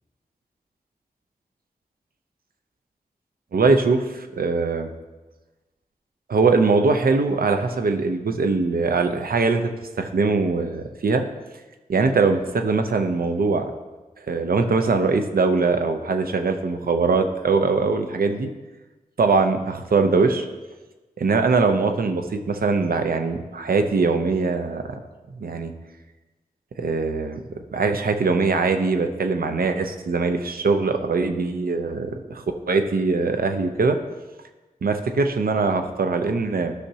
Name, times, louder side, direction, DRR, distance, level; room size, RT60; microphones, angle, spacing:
voice 1, 3.5-4.9 6.3-9.7 10.0-11.2 11.9-13.7 14.3-18.5 19.2-20.5 21.2-25.0 25.4-25.7 26.8-34.0 34.8-36.7, right 4 dB, 80° right, 7 dB, 0.7 m, -22 dB
13.0 x 5.8 x 2.8 m, 1.2 s
wide cardioid pair, 65°, 15 cm